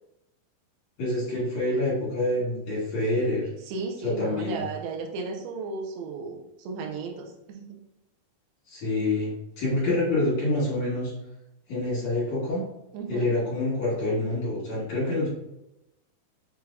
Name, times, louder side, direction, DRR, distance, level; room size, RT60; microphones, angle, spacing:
voice 1, 1.0-3.5 4.0-4.6 8.7-11.1 11.7-12.6 13.1-15.3, left 2 dB, 55° left, -7 dB, 2.6 m, -27 dB
voice 2, 3.7-7.8 12.9-13.3, right 4 dB, 85° right, 1 dB, 2.7 m, -34 dB
6.5 x 3.3 x 2.3 m, 0.88 s
omnidirectional pair, 4.4 m